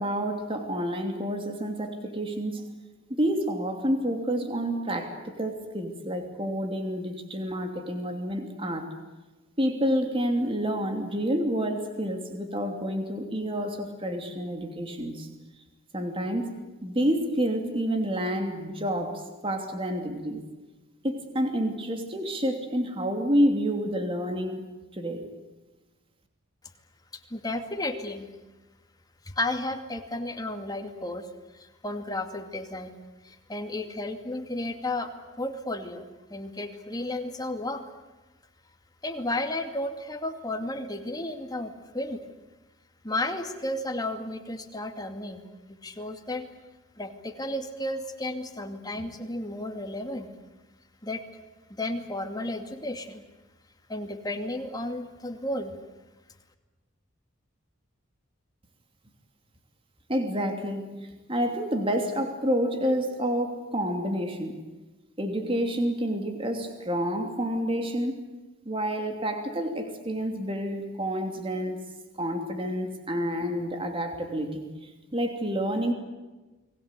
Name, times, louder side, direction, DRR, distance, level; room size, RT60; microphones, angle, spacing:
voice 1, 0.0-2.7 3.1-8.9 9.6-15.3 15.9-16.5 16.8-20.4 21.0-25.3 60.1-64.6 65.2-68.2 68.6-71.8 72.2-75.9, equal, 25° right, 4 dB, 2.9 m, -29 dB
voice 2, 27.1-28.3 29.3-31.3 31.5-33.0 33.2-35.1 35.4-36.0 36.3-37.8 39.0-42.2 43.0-45.4 45.7-46.5 47.0-50.3 51.0-51.2 51.7-53.2 53.9-55.7, left 1 dB, 20° left, 5 dB, 2.4 m, -33 dB
30.0 x 21.5 x 8.3 m, 1.2 s
head